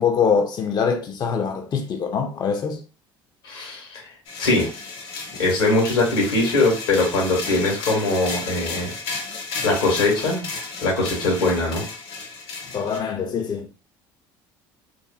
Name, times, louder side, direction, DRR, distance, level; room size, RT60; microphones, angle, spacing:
voice 1, 0.0-2.8 12.7-13.7, left 6 dB, 40° left, 0.4 m, -23 dB
voice 2, 3.4-4.0 4.4-4.7 5.4-8.9 9.6-10.4 10.8-11.8, left 2 dB, 85° left, 1.2 m, -21 dB
sound 1, 4.3-13.0, left 4 dB, 60° left, 0.8 m, -33 dB
2.7 x 2.6 x 2.2 m
hypercardioid pair, 70°, 11 cm